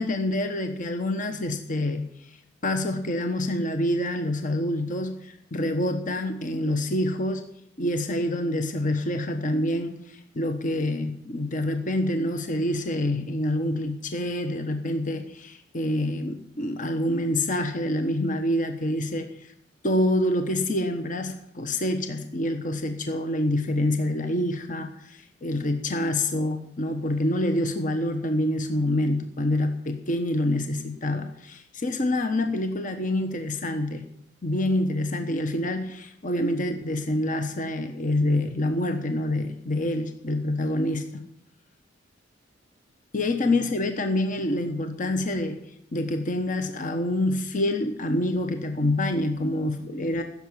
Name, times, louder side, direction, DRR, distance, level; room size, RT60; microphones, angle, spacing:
voice 1, 0.0-2.1 2.6-7.4 7.8-19.5 19.8-34.0 34.4-41.2 43.1-45.6 45.9-50.2, left 1 dB, 45° left, 7 dB, 1.1 m, -26 dB
15.5 x 7.1 x 9.9 m, 0.74 s
head